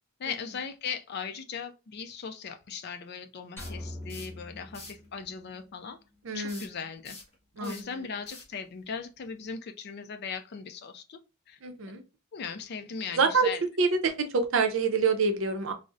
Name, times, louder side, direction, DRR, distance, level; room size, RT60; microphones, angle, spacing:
voice 1, 0.2-6.0 6.3-7.2 7.6-11.2 11.5-11.6 12.3-13.6, left 6 dB, 45° left, 0.4 m, -38 dB
sound 1, 3.6-4.4 4.7-5.1 6.5-9.5, left 3 dB, 30° left, 1.1 m, -48 dB
sound 2, 3.6-5.8, left 1 dB, 10° left, 0.7 m, -43 dB
voice 2, 6.2-6.6 7.6-7.9 11.6-12.0 13.1-15.7, right 4 dB, 60° right, 0.5 m, -26 dB
3.8 x 2.0 x 2.4 m
head